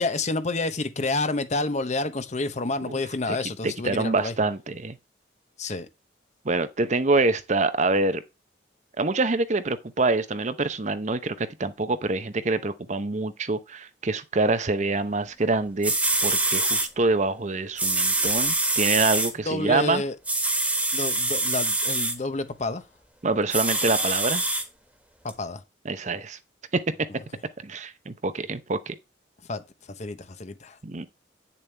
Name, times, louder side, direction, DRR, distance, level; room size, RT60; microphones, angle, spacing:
voice 1, 0.0-4.3 5.6-5.9 19.5-20.1 20.9-22.8 25.2-25.6 29.5-29.6 30.0-30.8, left 2 dB, 40° left, 0.8 m, -29 dB
voice 2, 3.6-5.0 6.4-8.2 9.0-15.9 16.2-20.0 23.2-24.4 25.8-26.4 26.7-26.9 27.6-29.0 30.8-31.1, right 3 dB, 40° right, 0.7 m, -26 dB
sound 1, 15.5-15.6 15.8-16.9 17.8-19.3 20.2-22.1 23.5-24.6 25.3-25.4, right 2 dB, 5° right, 1.6 m, -24 dB
8.8 x 7.0 x 3.3 m
head